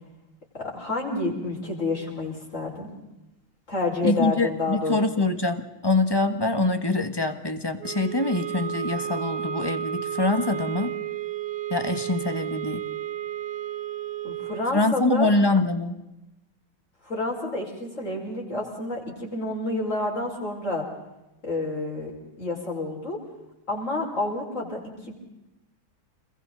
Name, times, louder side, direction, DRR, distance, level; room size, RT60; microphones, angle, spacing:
voice 1, 0.5-2.9 3.7-5.2 14.2-15.3 17.0-20.8 21.4-22.1 22.4-23.2 23.7-25.1, left 2 dB, 35° left, -2 dB, 5.9 m, -29 dB
voice 2, 4.0-10.9 11.7-12.8 14.7-16.0, left 2 dB, 15° left, 8 dB, 1.2 m, -24 dB
sound 1, 7.8-14.8, right 11 dB, 60° right, 1.5 m, -32 dB
30.0 x 21.5 x 4.0 m, 0.95 s
omnidirectional pair, 2.3 m